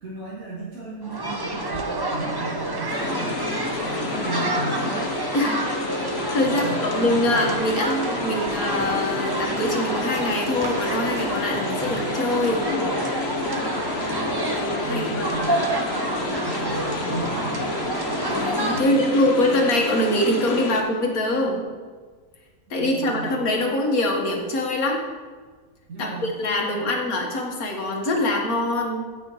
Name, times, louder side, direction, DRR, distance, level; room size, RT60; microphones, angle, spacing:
voice 1, 0.0-4.9 6.4-7.5 11.8-12.0 14.0-14.4 14.8-15.7 16.4-17.7 18.7-19.6 22.7-23.4 25.9-26.9, right 3 dB, 65° right, -7 dB, 2.4 m, -35 dB
sound 1, 1.0-18.8, right 1 dB, 25° right, 0.5 m, -28 dB
sound 2, 2.9-20.8, left 3 dB, 45° left, 1.2 m, -30 dB
voice 2, 6.3-12.7 14.5-15.3 18.3-21.6 22.7-25.0 26.0-29.1, left 1 dB, 70° left, 0 dB, 2.0 m, -24 dB
17.5 x 6.2 x 3.1 m, 1.5 s
omnidirectional pair, 1.6 m